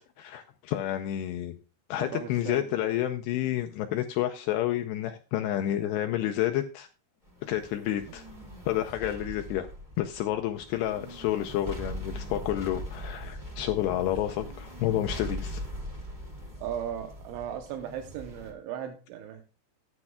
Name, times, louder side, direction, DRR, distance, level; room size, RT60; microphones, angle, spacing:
voice 1, 0.2-1.6 1.9-6.9 7.4-8.3 8.7-9.7 10.0-15.6, left 12 dB, 80° left, 6 dB, 2.6 m, -30 dB
voice 2, 2.0-2.9 16.6-19.5, right 9 dB, 85° right, 5 dB, 3.3 m, -37 dB
sound 1, 7.2-18.5, equal, 15° right, 1.5 m, -41 dB
17.5 x 9.8 x 2.3 m, 0.33 s
omnidirectional pair, 5.2 m